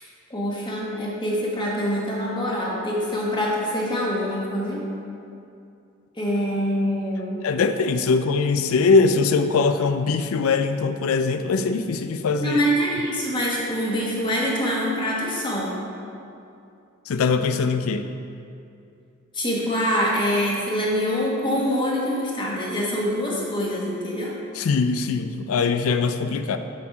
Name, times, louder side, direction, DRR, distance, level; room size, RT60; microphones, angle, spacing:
voice 1, 0.3-4.8 6.2-7.4 12.4-15.7 19.3-24.3, equal, 20° left, -4 dB, 1.4 m, -25 dB
voice 2, 7.4-12.6 17.1-18.1 24.5-26.6, left 4 dB, 80° left, 9 dB, 0.4 m, -21 dB
7.3 x 6.2 x 4.7 m, 2.6 s
head